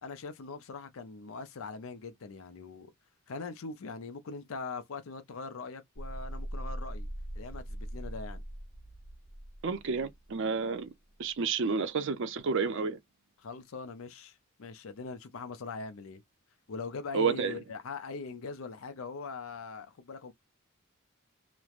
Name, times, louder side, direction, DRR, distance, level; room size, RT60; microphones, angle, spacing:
voice 1, 0.0-2.9 3.3-7.1 7.4-8.4 13.4-16.2 16.7-20.3, left 4 dB, 70° left, 0.5 m, -41 dB
sound 1, 6.0-10.6, equal, 30° left, 0.9 m, -41 dB
voice 2, 9.6-10.9 11.2-13.0 17.1-17.5, right 5 dB, 60° right, 0.5 m, -30 dB
3.1 x 2.1 x 2.4 m
head